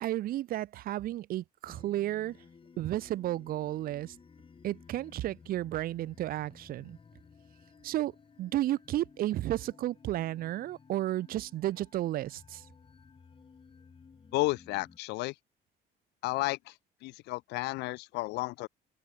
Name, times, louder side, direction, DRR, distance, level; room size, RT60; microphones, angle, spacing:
voice 1, 0.0-2.4 2.8-4.1 4.6-7.0 7.8-8.1 8.4-12.6, right 14 dB, 60° right, 0.5 m, -32 dB
sound 1, 1.6-15.0, left 5 dB, 30° left, 6.7 m, -57 dB
voice 2, 14.3-15.3 16.2-16.7 17.0-18.7, left 21 dB, 90° left, 1.2 m, -32 dB
cardioid pair, 110°, 17 cm